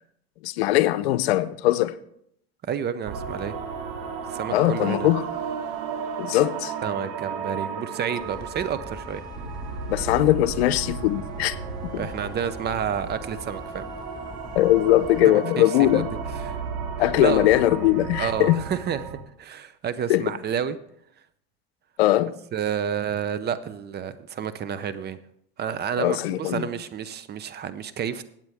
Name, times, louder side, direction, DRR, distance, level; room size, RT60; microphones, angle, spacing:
voice 1, 0.4-1.9 4.5-5.2 6.2-6.7 9.9-11.6 11.9-12.1 14.5-16.1 17.0-18.6 20.1-20.2 22.0-22.3 26.0-26.7, left 15 dB, 85° left, 0.7 m, -21 dB
voice 2, 2.6-3.5 4.3-5.1 6.8-9.2 12.0-13.9 15.2-16.0 16.3-16.6 17.0-17.5 18.2-20.8 22.5-25.2 25.6-28.2, right 8 dB, 35° right, 0.7 m, -30 dB
sound 1, 3.1-19.2, right 6 dB, 70° right, 2.4 m, -34 dB
sound 2, 8.2-15.2, left 2 dB, 15° left, 1.7 m, -42 dB
16.0 x 9.0 x 3.5 m
supercardioid pair, 105°, 31 cm